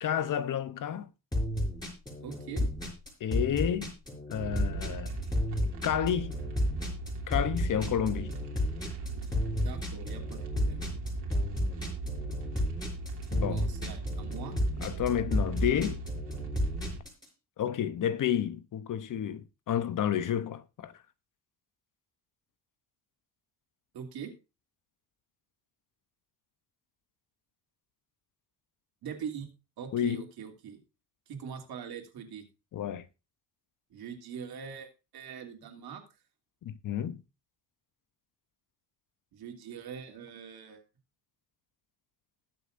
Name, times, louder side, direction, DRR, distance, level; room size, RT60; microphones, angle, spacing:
voice 1, 0.0-1.1 3.2-3.9 4.3-5.2 5.8-6.3 7.3-8.4 13.3-13.6 14.8-16.0 17.6-20.9 29.9-30.2 32.7-33.1 36.6-37.2, left 10 dB, 50° left, 0.8 m, -30 dB
sound 1, 1.3-17.2, left 1 dB, 10° left, 4.8 m, -32 dB
voice 2, 2.2-2.7 9.6-10.8 13.5-14.6 23.9-24.3 29.0-29.5 29.8-30.8 31.3-32.4 33.9-36.0 39.3-40.8, right 7 dB, 65° right, 2.9 m, -42 dB
sound 2, 4.4-17.0, right 2 dB, 85° right, 3.1 m, -38 dB
20.0 x 6.8 x 2.6 m
cardioid pair, 135°, 41 cm